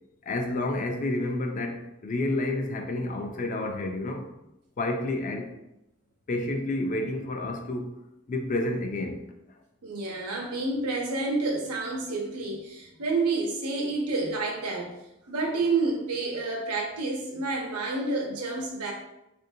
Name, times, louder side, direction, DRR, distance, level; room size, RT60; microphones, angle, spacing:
voice 1, 0.2-4.3 4.8-5.5 6.3-7.9 8.3-9.3, left 2 dB, 35° left, 4 dB, 0.3 m, -30 dB
voice 2, 9.8-14.9 15.2-18.9, right 3 dB, 80° right, 0 dB, 0.7 m, -29 dB
3.4 x 2.5 x 2.6 m, 0.88 s
head